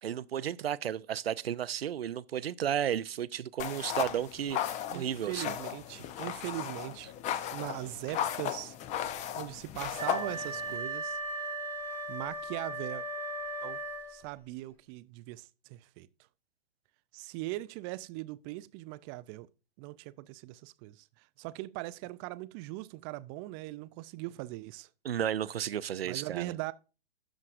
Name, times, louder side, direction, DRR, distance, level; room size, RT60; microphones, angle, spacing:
voice 1, 0.0-5.5 25.0-26.6, right 9 dB, 80° right, 0.6 m, -33 dB
sound 1, 3.6-10.8, left 10 dB, 25° left, 0.6 m, -36 dB
voice 2, 4.9-7.1 7.5-8.8 9.3-11.2 11.9-13.1 13.6-13.8 14.1-16.1 17.1-19.5 19.8-24.9 26.1-26.7, right 18 dB, 25° right, 0.4 m, -40 dB
Wind instrument woodwind instrument, 9.9-14.4, right 2 dB, 5° left, 1.5 m, -37 dB
16.0 x 6.4 x 2.5 m
figure-of-eight pair, 115°, 30 cm